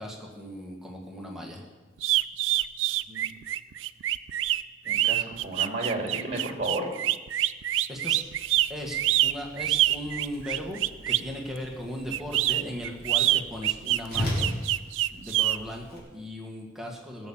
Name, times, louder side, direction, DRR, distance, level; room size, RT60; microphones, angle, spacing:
voice 1, 0.0-1.6 7.9-8.2 8.7-14.5 15.1-17.3, equal, ahead, -1 dB, 1.8 m, -37 dB
sound 1, 2.0-11.3 12.1-15.6, right 14 dB, 70° right, 0.4 m, -25 dB
voice 2, 4.8-6.9, right 2 dB, 30° right, 1 dB, 2.7 m, -32 dB
Whoosh swoosh swish, 8.2-16.0, left 1 dB, 55° left, 3.7 m, -38 dB
17.5 x 7.1 x 7.2 m, 1.2 s
head